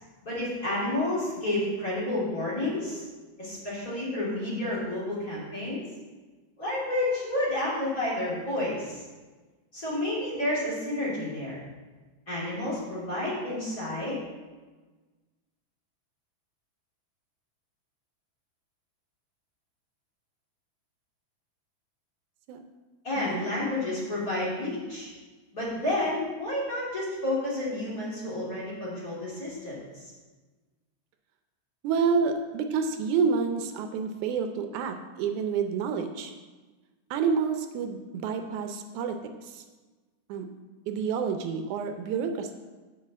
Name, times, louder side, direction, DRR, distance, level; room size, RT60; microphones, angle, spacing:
voice 1, 0.2-3.0 3.4-5.8 6.6-9.0 9.7-11.6 12.3-14.2 23.0-25.1 25.5-30.1, left 1 dB, 30° left, -8 dB, 3.2 m, -30 dB
voice 2, 23.2-23.5 31.8-36.3 37.1-39.7 40.3-40.5 40.9-42.5, right 5 dB, 80° right, 6 dB, 2.0 m, -29 dB
6.4 x 6.2 x 7.4 m, 1.3 s
omnidirectional pair, 3.5 m